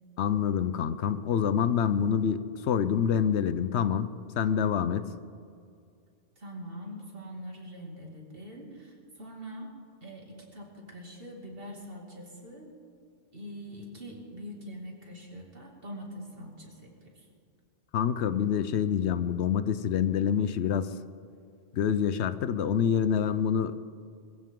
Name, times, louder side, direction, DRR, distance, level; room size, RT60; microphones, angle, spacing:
voice 1, 0.2-4.1 4.4-5.0 17.9-20.9 21.7-23.7, left 8 dB, 80° left, 13 dB, 0.9 m, -26 dB
voice 2, 6.4-12.7 13.3-17.3, equal, 55° right, -1 dB, 2.7 m, -43 dB
22.0 x 15.0 x 3.8 m, 2.3 s
omnidirectional pair, 1.1 m